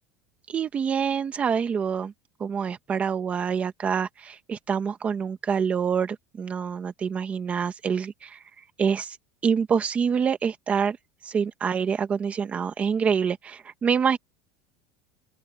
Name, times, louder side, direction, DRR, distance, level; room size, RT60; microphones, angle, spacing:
voice 1, 0.5-2.1 2.4-8.4 8.8-9.2 9.4-11.0 11.2-14.2, right 6 dB, 20° right, 1.3 m, -26 dB
open air
cardioid pair, 175°, 7 cm